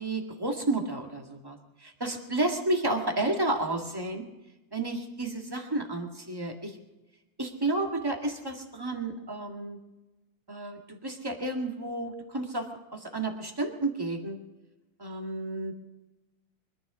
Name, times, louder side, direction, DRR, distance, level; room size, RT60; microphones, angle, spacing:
voice 1, 0.0-4.2 4.7-6.8 7.4-9.8 10.5-14.4 15.0-15.7, right 2 dB, 10° right, 3 dB, 1.7 m, -31 dB
24.0 x 10.5 x 5.0 m, 1.0 s
omnidirectional pair, 2.2 m